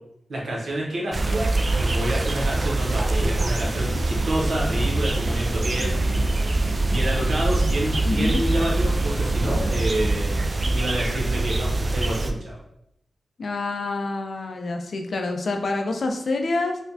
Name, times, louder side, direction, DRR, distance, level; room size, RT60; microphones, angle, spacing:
voice 1, 0.3-12.6, right 1 dB, 80° right, -3 dB, 1.0 m, -29 dB
sound 1, 1.1-12.3, right 2 dB, 40° right, 0.3 m, -24 dB
sound 2, 3.2-10.2, equal, 30° left, 0.7 m, -34 dB
voice 2, 8.0-8.4 13.4-16.8, left 2 dB, 70° left, 4 dB, 0.4 m, -27 dB
4.2 x 2.2 x 2.7 m, 0.78 s
cardioid pair, 70°, 0 cm